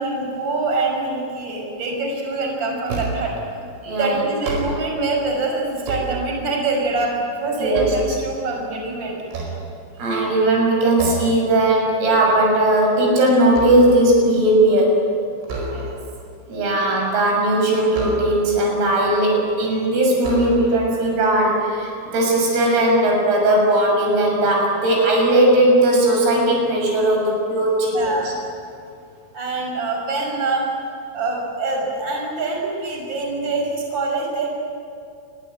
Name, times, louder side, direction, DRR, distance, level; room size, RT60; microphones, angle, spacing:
voice 1, 0.0-3.3 4.0-7.1 7.4-9.1 15.7-16.0 27.9-28.3 29.3-30.6 31.1-34.5, right 3 dB, 20° right, 0 dB, 6.1 m, -24 dB
sound 1, 2.9-3.4 4.3-5.1 5.6-6.7 7.2-8.7 9.2-10.2 11.0-11.5 11.9-12.1 12.5-14.2 15.4-16.2 17.9-18.7 19.5-19.6 20.2-21.0, right 3 dB, 65° right, 7.3 m, -30 dB
voice 2, 3.8-4.2 7.6-8.2 10.0-15.0 16.5-28.3, right 1 dB, 80° right, 0 dB, 9.3 m, -18 dB
29.0 x 21.0 x 9.4 m, 2.5 s
omnidirectional pair, 6.0 m